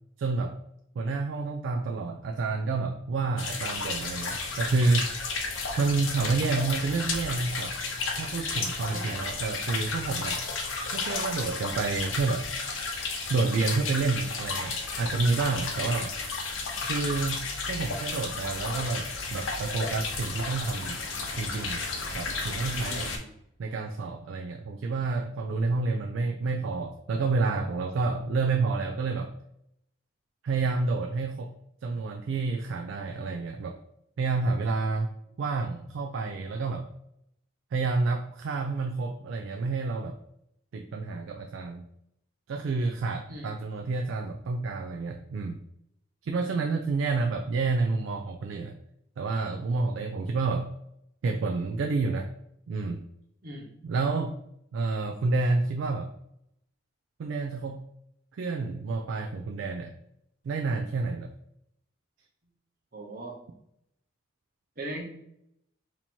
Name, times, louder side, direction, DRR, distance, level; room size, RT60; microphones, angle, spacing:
voice 1, 0.2-0.6 1.0-5.1 5.8-7.7 8.2-10.4 10.9-12.5 13.3-16.1 16.8-21.0 21.4-21.8 22.1-23.1 23.6-29.3 30.4-31.5 31.8-33.8 34.2-35.1 35.4-36.9 37.7-40.2 40.7-41.8 42.5-45.6 46.2-48.8 49.2-50.7 51.2-52.3 52.7-53.0 53.8-54.3 54.7-56.1 57.2-57.8 58.3-59.9 60.4-61.3, right 3 dB, 70° right, 4 dB, 0.3 m, -29 dB
sound 1, 3.4-23.2, left 4 dB, 75° left, 0.7 m, -33 dB
voice 2, 8.8-9.3 15.8-15.9 22.7-23.3 28.0-28.1 43.3-43.5 53.4-53.7 62.9-63.4 64.8-65.0, right 1 dB, 45° right, 0 dB, 0.9 m, -40 dB
2.9 x 2.7 x 4.3 m, 0.77 s
head